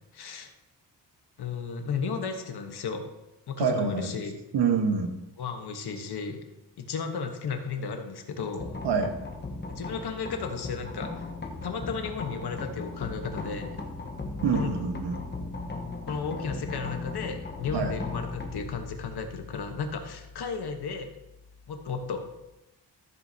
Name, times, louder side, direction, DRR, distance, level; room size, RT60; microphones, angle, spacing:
voice 1, 0.1-0.5 1.4-3.1 3.5-4.3 5.4-6.4 6.8-8.8 9.7-11.2 11.6-13.8 14.5-14.7 16.0-21.1 21.7-22.3, left 5 dB, 65° left, 5 dB, 1.3 m, -34 dB
voice 2, 3.6-4.1 4.5-5.1 8.8-9.1 14.4-15.2 17.7-17.9, right 6 dB, 75° right, 5 dB, 1.5 m, -26 dB
sound 1, 8.6-22.4, left 3 dB, 25° left, 1.2 m, -38 dB
14.0 x 7.9 x 2.9 m, 0.94 s
wide cardioid pair, 135°, 42 cm